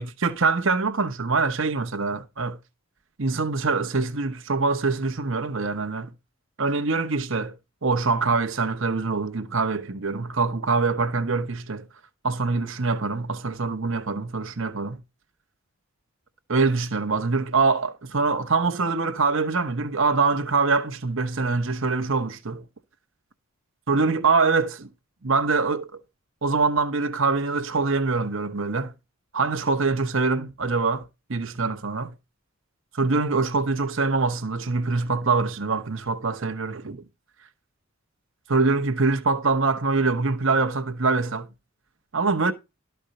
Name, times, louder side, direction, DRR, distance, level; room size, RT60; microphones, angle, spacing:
voice 1, 0.0-2.6 3.2-6.1 6.6-7.5 7.8-11.9 12.2-15.0 16.5-22.6 23.9-24.9 25.2-26.0 26.4-28.9 29.3-32.1 32.9-37.0 38.5-41.5 42.1-42.5, right 4 dB, 60° right, 1.0 m, -24 dB
13.0 x 4.4 x 6.5 m
head